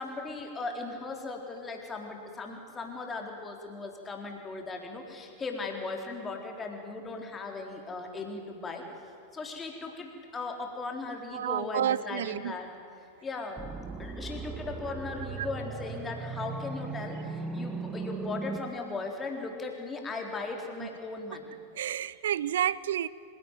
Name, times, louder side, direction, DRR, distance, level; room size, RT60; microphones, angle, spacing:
voice 1, 0.0-8.9 9.3-12.7 13.2-13.6 14.0-21.6, left 3 dB, 20° left, 2 dB, 3.9 m, -38 dB
voice 2, 11.3-12.5 15.4-15.5 20.8-20.9 21.7-23.1, right 10 dB, 60° right, 20 dB, 0.6 m, -30 dB
sound 1, 13.6-18.6, right 3 dB, 15° right, 1.6 m, -37 dB
25.5 x 16.5 x 9.4 m, 2.6 s
figure-of-eight pair, 90°, 0 cm